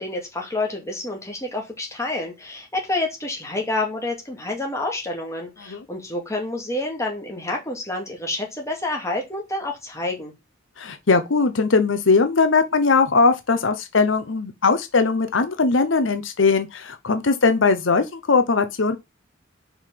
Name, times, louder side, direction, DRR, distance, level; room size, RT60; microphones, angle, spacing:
voice 1, 0.0-10.3, left 2 dB, 15° left, 2.2 m, -28 dB
voice 2, 10.8-19.0, left 4 dB, 70° left, 0.8 m, -20 dB
5.6 x 4.6 x 5.9 m
head